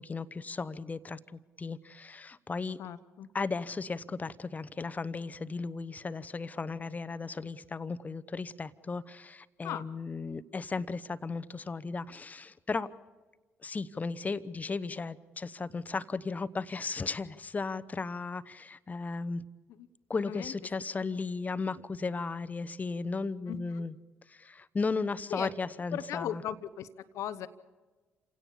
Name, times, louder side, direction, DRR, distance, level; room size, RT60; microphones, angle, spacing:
voice 1, 0.0-2.8 3.3-12.9 13.6-19.4 20.1-23.9 24.3-26.4, left 4 dB, 25° left, 16 dB, 0.9 m, -35 dB
voice 2, 2.8-3.3 9.6-9.8 19.7-19.9 20.2-20.5 23.5-23.9 25.3-25.5 25.9-26.9 27.1-27.5, left 10 dB, 55° left, 12 dB, 0.9 m, -37 dB
29.0 x 17.0 x 7.1 m, 1.3 s
figure-of-eight pair, 45°, 6 cm